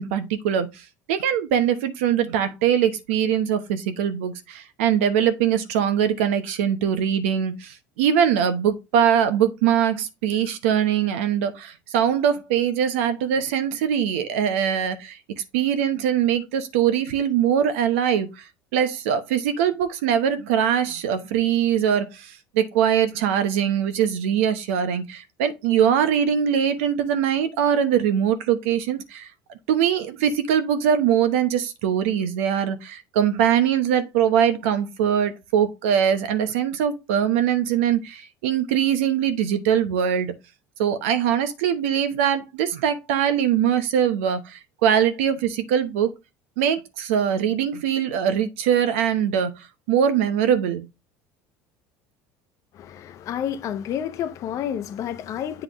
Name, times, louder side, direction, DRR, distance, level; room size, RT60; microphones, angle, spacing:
voice 1, 0.0-15.2 15.5-18.4 18.7-29.3 29.7-40.3 40.8-46.1 46.6-49.5 49.9-50.9, right 9 dB, 85° right, 0.9 m, -22 dB
voice 2, 52.7-55.6, left 9 dB, 50° left, 0.8 m, -30 dB
8.0 x 3.8 x 3.1 m
supercardioid pair, 105°, 7 cm